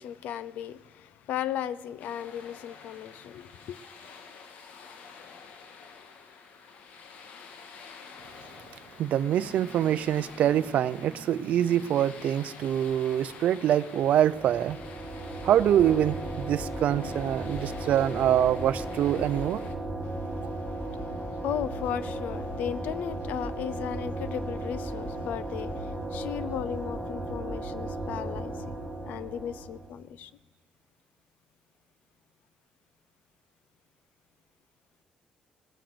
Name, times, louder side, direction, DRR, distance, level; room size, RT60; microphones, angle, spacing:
voice 1, 0.0-3.8 20.1-30.3, left 10 dB, 85° left, 0.6 m, -36 dB
sound 1, 2.0-19.7, left 5 dB, 70° left, 1.5 m, -49 dB
voice 2, 9.0-14.8 15.4-19.6, right 10 dB, 60° right, 0.5 m, -25 dB
sound 2, 9.2-13.3, right 2 dB, 25° left, 5.2 m, -51 dB
sound 3, 14.2-30.0, right 1 dB, 10° left, 2.4 m, -35 dB
19.0 x 9.1 x 7.8 m
cardioid pair, 170°, 3 cm